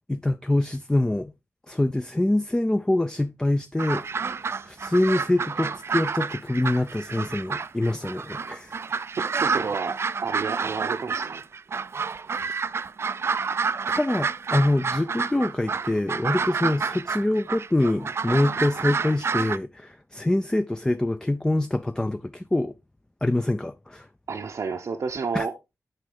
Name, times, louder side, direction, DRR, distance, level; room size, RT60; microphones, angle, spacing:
voice 1, 0.1-1.3 1.7-8.8 12.4-12.5 13.9-22.7 23.2-24.1 25.3-25.5, left 1 dB, 10° left, 0.4 m, -25 dB
sound 1, 3.8-19.6, right 5 dB, 50° right, 0.4 m, -29 dB
voice 2, 9.2-11.4 24.3-25.8, right 5 dB, 70° right, 0.8 m, -31 dB
9.0 x 5.4 x 3.9 m
wide cardioid pair, 120°, 6 cm